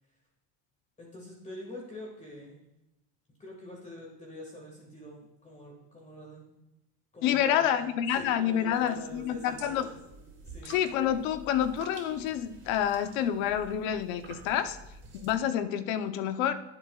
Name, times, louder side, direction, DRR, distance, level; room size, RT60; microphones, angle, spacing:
voice 1, 1.0-2.6 3.4-6.5 7.1-10.0 10.5-10.7, left 1 dB, 15° left, -2 dB, 1.9 m, -45 dB
voice 2, 7.2-9.9 10.6-14.8 15.1-16.5, left 10 dB, 85° left, 9 dB, 0.9 m, -28 dB
sound 1, 8.6-15.4, right 3 dB, 30° right, 3.2 m, -49 dB
15.0 x 8.0 x 2.4 m, 0.92 s
cardioid pair, 120°, 40 cm